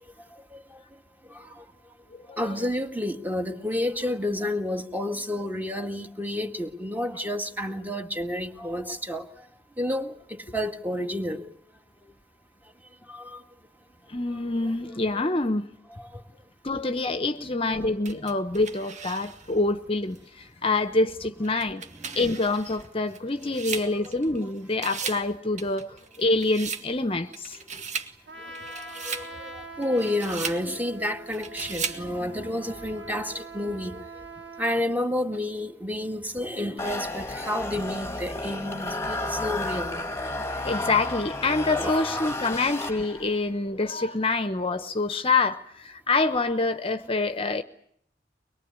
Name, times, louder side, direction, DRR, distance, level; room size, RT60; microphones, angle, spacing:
voice 1, 1.3-1.7 2.4-9.2 9.8-11.5 13.1-13.4 14.3-14.4 16.1-16.2 17.6-17.9 22.0-22.2 23.5-24.2 28.5-28.6 29.0-34.1 34.6-40.0 41.7-42.3 47.0-47.2, left 1 dB, 10° right, 1.9 m, -30 dB
voice 2, 14.1-15.7 16.6-20.2 20.6-21.8 22.1-25.9 26.2-27.6 40.6-47.6, left 3 dB, 30° left, 1.0 m, -26 dB
sound 1, 18.0-19.6 20.1-20.2 21.4-24.4 24.7-25.3 25.6-26.9 27.3-28.1 28.5-29.3 29.8-30.6 31.3-32.0, right 5 dB, 45° right, 1.9 m, -36 dB
Trumpet, 28.3-34.9, right 2 dB, 70° right, 2.3 m, -43 dB
sound 2, 36.8-43.4, left 2 dB, 15° left, 1.6 m, -32 dB
23.5 x 22.0 x 9.7 m
head